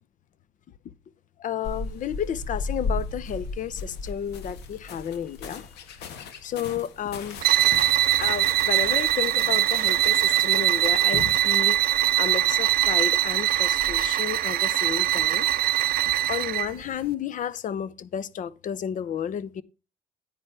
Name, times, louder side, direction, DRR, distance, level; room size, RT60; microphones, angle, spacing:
voice 1, 1.4-5.6 6.1-7.8 8.2-11.8 12.2-15.5 15.9-19.6, left 9 dB, 50° left, 0.8 m, -32 dB
sound 1, 1.6-14.1, left 3 dB, 80° left, 1.7 m, -38 dB
sound 2, 7.4-16.7, right 14 dB, 60° right, 0.5 m, -22 dB
10.0 x 9.4 x 3.4 m
cardioid pair, 110°, 17 cm